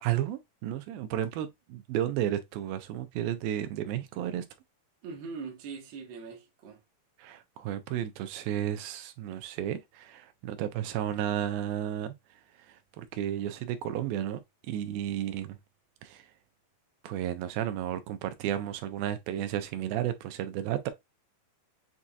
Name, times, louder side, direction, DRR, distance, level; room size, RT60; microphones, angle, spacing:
voice 1, 0.0-4.5 7.2-12.1 12.7-14.4 14.7-15.6 16.0-16.3 17.0-20.9, right 11 dB, 90° right, 2.4 m, -33 dB
voice 2, 5.0-6.8, right 5 dB, 60° right, 1.2 m, -41 dB
7.3 x 2.7 x 2.3 m
omnidirectional pair, 4.1 m